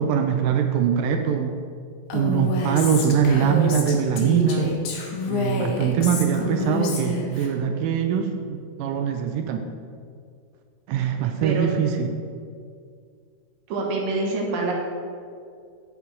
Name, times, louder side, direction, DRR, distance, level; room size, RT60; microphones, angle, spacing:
voice 1, 0.0-1.6 2.1-4.8 5.3-9.7 10.9-12.2, right 7 dB, 85° right, 5 dB, 2.2 m, -22 dB
Female speech woman speaking, 2.1-7.5, left 4 dB, 75° left, 2.3 m, -28 dB
voice 2, 13.7-14.7, right 3 dB, 65° right, -1 dB, 2.1 m, -26 dB
8.6 x 6.0 x 3.8 m, 2.2 s
omnidirectional pair, 3.8 m